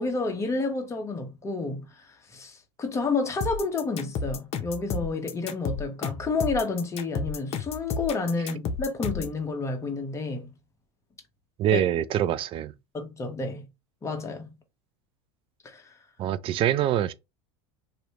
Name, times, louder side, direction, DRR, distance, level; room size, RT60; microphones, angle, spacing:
voice 1, 0.0-10.5 11.7-11.8 12.9-13.7 14.0-14.6 15.6-15.8, left 3 dB, 20° left, 1.0 m, -30 dB
sound 1, 3.4-9.4, left 5 dB, 45° left, 0.8 m, -32 dB
voice 2, 11.6-12.7 16.2-17.1, right 11 dB, 40° right, 0.4 m, -24 dB
3.1 x 2.7 x 3.0 m
supercardioid pair, 105°, 15 cm